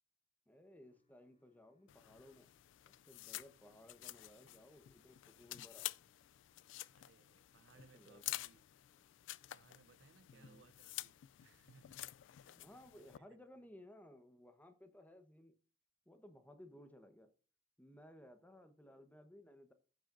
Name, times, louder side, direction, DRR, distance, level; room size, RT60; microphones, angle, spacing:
voice 1, 0.5-2.5 2.9-5.9 7.9-8.2 10.3-10.7 12.4-15.5 16.1-17.3 17.8-19.7, left 1 dB, 10° left, 1.0 m, -59 dB
sound 1, 0.8-12.8, left 1 dB, 35° left, 3.3 m, -82 dB
sound 2, 1.9-13.2, left 16 dB, 85° left, 0.3 m, -50 dB
voice 2, 6.9-8.6 9.5-12.7 12.9-13.7, right 4 dB, 75° right, 0.5 m, -67 dB
15.0 x 7.4 x 2.6 m
head